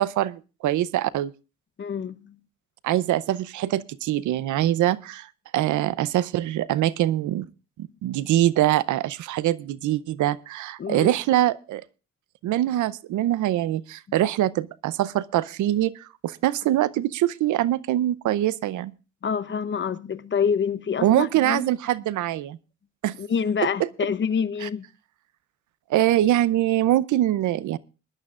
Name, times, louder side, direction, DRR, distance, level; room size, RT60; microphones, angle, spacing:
voice 1, 0.0-1.3 2.8-5.3 5.5-7.5 7.8-11.8 12.4-18.9 21.0-22.6 23.0-23.1 24.6-24.7 25.9-27.8, right 13 dB, 75° right, 0.6 m, -23 dB
voice 2, 1.8-2.4 10.8-11.1 19.2-21.7 23.2-24.9, left 6 dB, 40° left, 0.9 m, -27 dB
22.0 x 12.0 x 2.4 m
cardioid pair, 90°, 30 cm